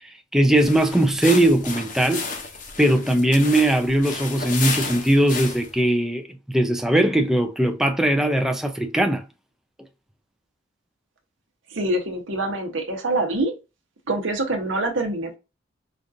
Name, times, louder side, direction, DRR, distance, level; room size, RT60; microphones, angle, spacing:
voice 1, 0.0-2.2 2.8-9.2, right 1 dB, ahead, 0.4 m, -20 dB
sound 1, 0.5-5.8, left 4 dB, 40° left, 0.7 m, -32 dB
voice 2, 11.7-13.5 14.1-15.4, right 2 dB, 75° right, 0.9 m, -25 dB
5.1 x 2.4 x 2.6 m
head